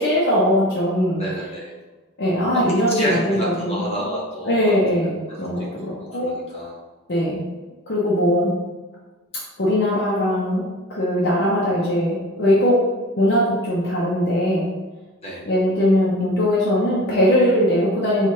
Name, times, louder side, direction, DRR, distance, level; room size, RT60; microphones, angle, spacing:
voice 1, 0.0-1.2 2.2-3.8 4.5-6.4 7.1-7.4 7.9-8.6 9.6-12.8 13.2-14.7 15.5-18.3, equal, 45° left, -6 dB, 0.6 m, -20 dB
voice 2, 1.2-1.7 2.5-4.7 5.8-6.8 15.2-15.4, equal, 30° left, -5 dB, 0.9 m, -29 dB
4.5 x 2.4 x 2.8 m, 1.2 s
head